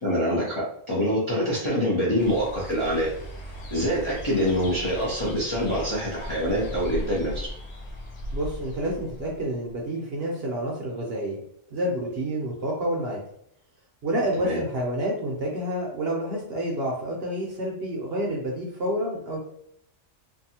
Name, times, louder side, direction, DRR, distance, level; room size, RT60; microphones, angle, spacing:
voice 1, 0.0-3.1 3.7-7.5 14.4-14.6, equal, 35° left, -6 dB, 0.5 m, -25 dB
sound 1, 2.2-9.8, equal, 70° left, 0.9 m, -37 dB
voice 2, 8.3-11.4 11.7-13.2 14.0-19.4, right 1 dB, 60° right, -2 dB, 0.7 m, -29 dB
2.6 x 2.3 x 2.7 m, 0.72 s
omnidirectional pair, 1.4 m